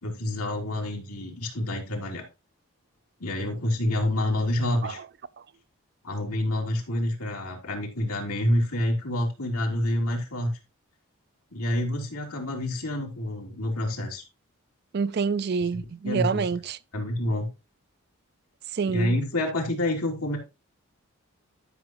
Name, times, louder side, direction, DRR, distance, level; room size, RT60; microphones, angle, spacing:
voice 1, 0.0-2.2 3.2-5.0 6.0-10.5 11.5-14.2 15.7-16.4 16.9-17.5 18.8-20.4, left 1 dB, 85° left, 3.2 m, -28 dB
voice 2, 14.9-16.8 18.7-19.1, right 5 dB, 45° right, 0.4 m, -27 dB
12.5 x 6.1 x 3.0 m
head